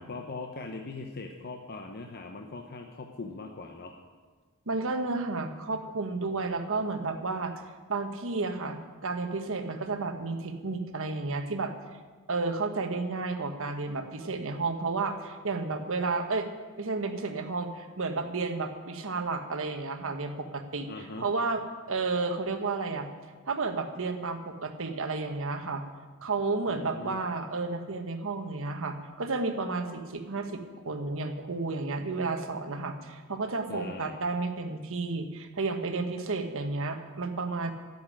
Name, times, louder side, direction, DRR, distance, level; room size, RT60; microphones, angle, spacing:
voice 1, 0.0-4.0 20.8-21.3 26.7-27.2 33.7-34.2, left 3 dB, 45° left, 3 dB, 0.9 m, -41 dB
voice 2, 4.7-7.5 7.9-11.7 12.3-16.5 16.8-20.9 21.2-21.6 21.9-23.1 23.5-25.8 26.2-37.7, right 3 dB, 65° right, 6 dB, 1.2 m, -32 dB
10.5 x 8.1 x 10.0 m, 1.4 s
head